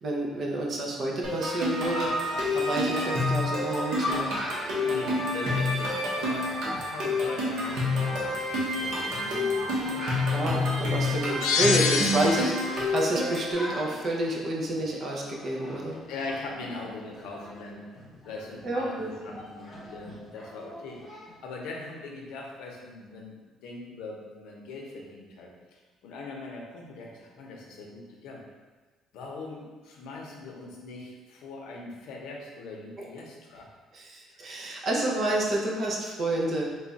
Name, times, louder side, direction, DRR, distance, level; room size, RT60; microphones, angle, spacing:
voice 1, 0.0-2.1 2.5-4.3 10.0-16.0 18.6-19.1 33.0-33.1 33.9-36.8, right 1 dB, 35° right, -2 dB, 0.6 m, -29 dB
sound 1, 1.2-13.5, left 2 dB, 70° right, 0.9 m, -28 dB
Chatter, 1.8-21.4, left 1 dB, 25° left, 0.8 m, -41 dB
voice 2, 4.7-10.1 11.3-11.5 16.1-17.9 18.2-21.2 21.4-23.4 23.6-28.4 29.1-33.7 34.2-34.4, left 3 dB, 85° left, -1 dB, 0.7 m, -41 dB
sound 2, 11.4-12.8, left 6 dB, 65° left, 0.3 m, -26 dB
3.2 x 2.3 x 4.0 m, 1.3 s
cardioid pair, 180°, 0 cm